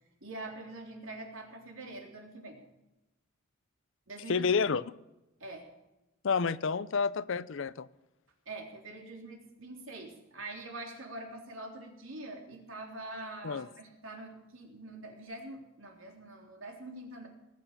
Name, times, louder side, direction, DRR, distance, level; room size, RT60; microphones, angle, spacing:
voice 1, 0.2-2.6 4.1-4.5 5.4-5.7 8.5-17.3, right 2 dB, 70° right, 1 dB, 3.6 m, -44 dB
voice 2, 4.3-4.8 6.2-7.9 13.4-13.7, left 5 dB, 65° left, 18 dB, 0.6 m, -29 dB
20.0 x 8.5 x 6.7 m, 0.96 s
head